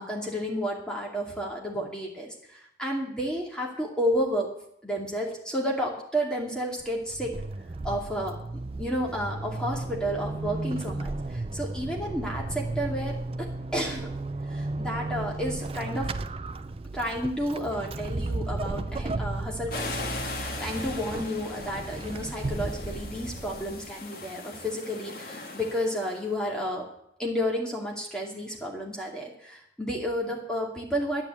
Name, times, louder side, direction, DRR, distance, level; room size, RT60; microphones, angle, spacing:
voice 1, 0.0-4.5 4.8-7.4 7.8-8.4 8.8-14.1 14.5-16.1 16.9-20.0 20.3-26.9 27.2-31.3, equal, 5° left, -2 dB, 2.5 m, -31 dB
Vehicle / Accelerating revving vroom / Squeak, 6.8-24.0, right 2 dB, 35° right, 0.4 m, -34 dB
sound 1, 19.7-26.3, left 3 dB, 55° left, 1.7 m, -39 dB
10.5 x 8.8 x 8.3 m, 0.73 s
head